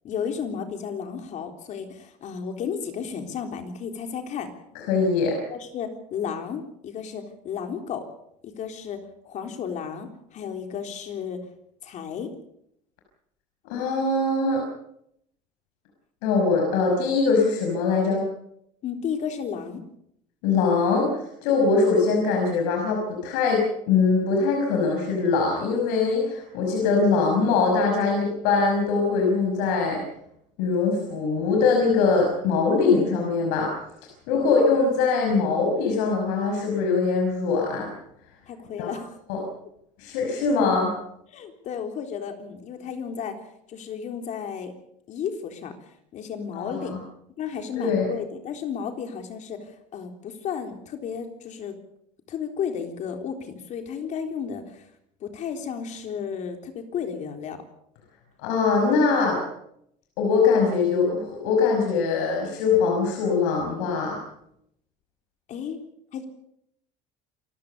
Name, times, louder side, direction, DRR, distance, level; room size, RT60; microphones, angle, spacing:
voice 1, 0.0-4.5 5.5-8.1 8.4-9.0 9.3-11.4 11.8-12.3 18.8-19.8 34.3-34.7 38.5-39.2 41.3-43.3 43.7-44.7 45.1-45.7 46.1-47.0 47.4-51.7 52.3-54.9 55.2-57.6 65.5-65.8 66.1-66.2, left 7 dB, 55° left, 5 dB, 3.8 m, -33 dB
voice 2, 4.9-5.4 13.6-14.6 16.2-18.2 20.4-21.1 21.4-30.0 30.6-33.7 34.3-37.9 38.8-38.9 39.3-39.4 40.0-40.9 46.5-47.0 47.8-48.1 58.4-59.4 60.2-64.2, left 4 dB, 85° left, 1 dB, 5.6 m, -22 dB
27.5 x 15.0 x 6.8 m, 0.75 s
cardioid pair, 120°, 15 cm